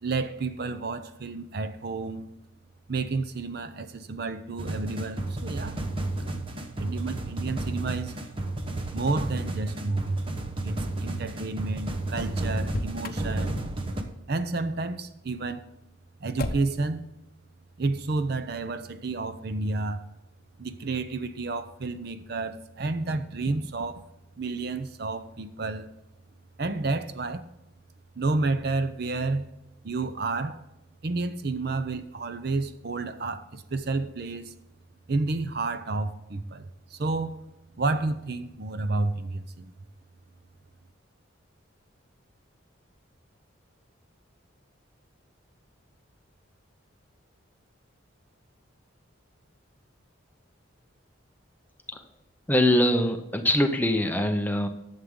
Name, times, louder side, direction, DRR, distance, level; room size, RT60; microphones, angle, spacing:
voice 1, 0.0-2.3 2.9-5.8 6.8-8.1 8.9-10.2 10.6-13.5 14.3-15.6 16.2-17.0 17.8-20.0 20.6-24.0 24.4-25.9 26.6-27.4 28.2-29.5 29.8-30.6 31.0-34.5 35.1-37.4 37.8-39.7, right 3 dB, 50° right, 0.6 m, -30 dB
sound 1, 4.6-14.0, right 2 dB, 25° right, 0.9 m, -32 dB
Motor vehicle (road), 12.6-13.3 16.4-16.9, left 2 dB, 45° left, 0.8 m, -34 dB
voice 2, 52.5-54.7, left 1 dB, 10° left, 0.7 m, -23 dB
11.5 x 7.3 x 3.7 m
head